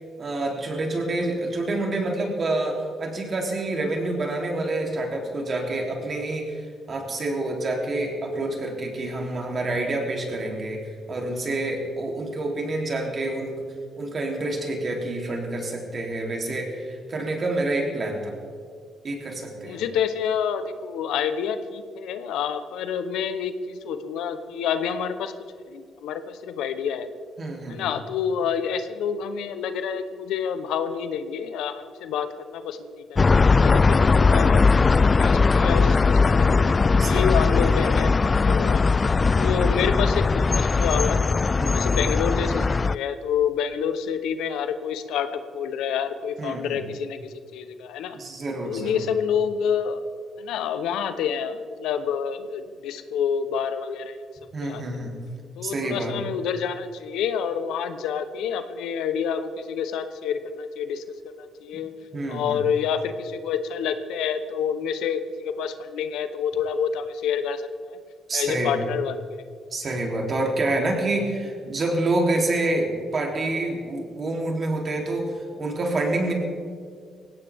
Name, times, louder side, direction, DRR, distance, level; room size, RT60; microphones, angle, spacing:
voice 1, 0.2-6.6 6.9-13.5 14.0-18.3 19.0-19.8 27.4-27.9 33.7-34.2 37.0-37.4 39.3-39.6 41.6-41.9 46.4-46.8 48.1-49.1 54.5-55.2 55.6-56.2 62.1-62.6 68.3-68.9 69.7-75.3 75.6-76.3, right 2 dB, 45° right, 0 dB, 3.3 m, -28 dB
voice 2, 19.6-25.3 25.7-27.1 27.7-36.6 37.0-38.8 39.4-41.2 41.6-45.3 45.5-48.2 48.6-50.0 50.4-54.2 54.6-54.8 55.6-61.0 61.4-61.9 62.3-68.0 68.3-69.4, left 7 dB, 85° left, 10 dB, 0.9 m, -28 dB
sound 1, 33.2-42.9, left 4 dB, 30° left, 0.3 m, -19 dB
19.0 x 16.5 x 3.6 m, 2.1 s
cardioid pair, 90°, 0 cm